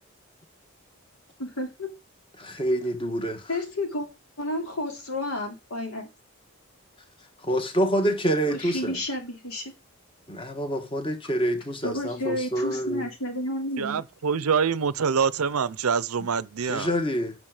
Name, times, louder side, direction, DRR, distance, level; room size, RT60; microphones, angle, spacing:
voice 1, 1.4-1.9 3.5-4.1 4.4-6.1 8.5-9.7 11.8-14.0, left 1 dB, 75° left, 2.9 m, -31 dB
voice 2, 2.4-3.4 7.4-9.0 10.3-13.1 16.7-17.3, equal, 25° left, 1.5 m, -27 dB
voice 3, 13.8-16.9, right 6 dB, 80° right, 0.6 m, -25 dB
8.8 x 6.1 x 5.0 m
head